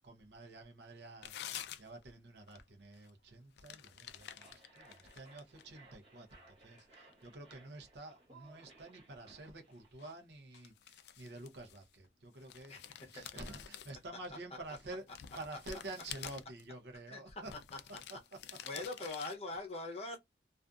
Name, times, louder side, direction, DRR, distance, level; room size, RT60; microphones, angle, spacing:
voice 1, 0.0-1.4 1.8-12.8 13.1-17.5 17.9-18.8 20.1-20.2, right 2 dB, 70° right, 0.7 m, -49 dB
sound 1, 1.2-2.1 2.4-2.6 2.9-3.1 3.6-5.8 6.3-7.3 10.0-10.2 10.5-12.1 12.4-14.3 14.8-16.6 17.4-19.4, left 10 dB, 65° left, 0.3 m, -49 dB
sound 2, 3.9-10.1, right 3 dB, 30° right, 0.9 m, -62 dB
voice 2, 18.7-20.2, left 2 dB, 35° left, 0.8 m, -41 dB
2.5 x 2.4 x 2.3 m
head